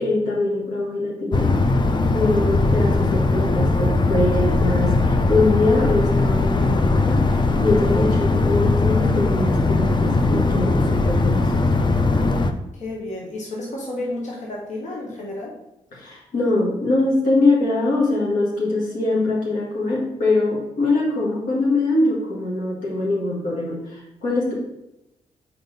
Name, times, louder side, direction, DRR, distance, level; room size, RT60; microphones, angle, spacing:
voice 1, 0.0-1.5 2.1-11.8 15.9-24.5, left 2 dB, 85° left, -4 dB, 1.6 m, -23 dB
sound 1, 1.3-12.5, left 3 dB, 35° left, 0.6 m, -19 dB
voice 2, 12.7-15.5, left 1 dB, 65° left, -3 dB, 1.4 m, -31 dB
4.4 x 4.1 x 5.3 m, 0.88 s
supercardioid pair, 55°, 13 cm